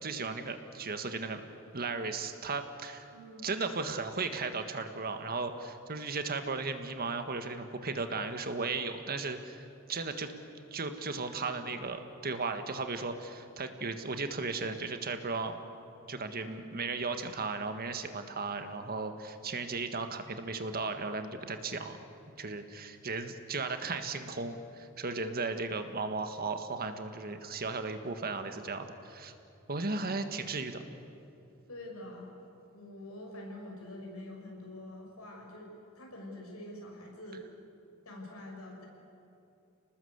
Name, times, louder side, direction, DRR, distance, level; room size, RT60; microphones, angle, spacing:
voice 1, 0.0-1.4 1.7-3.1 3.4-10.3 10.7-15.6 16.1-22.0 22.4-29.3 29.7-30.8, right 3 dB, 45° right, 7 dB, 1.6 m, -36 dB
voice 2, 3.1-3.5 16.3-16.7 31.7-32.3 32.7-35.7 35.9-37.4 38.0-38.9, left 1 dB, 75° left, 0 dB, 6.5 m, -45 dB
30.0 x 19.5 x 8.2 m, 2.7 s
head